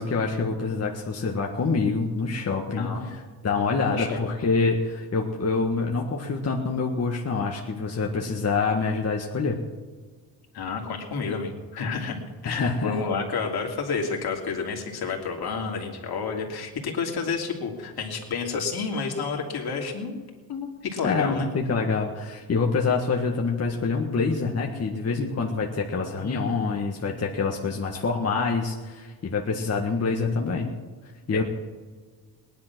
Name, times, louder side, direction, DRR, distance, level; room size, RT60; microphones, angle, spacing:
voice 1, 0.0-2.9 3.4-9.6 12.5-13.0 21.0-30.7 31.3-31.4, left 4 dB, 40° left, 0 dB, 1.6 m, -26 dB
voice 2, 2.8-3.1 3.8-4.3 10.5-12.2 12.4-20.2 20.5-21.5 26.2-26.6 31.3-31.4, left 5 dB, 65° left, 1 dB, 2.9 m, -30 dB
19.0 x 11.0 x 6.1 m, 1.5 s
cardioid pair, 110°, 40 cm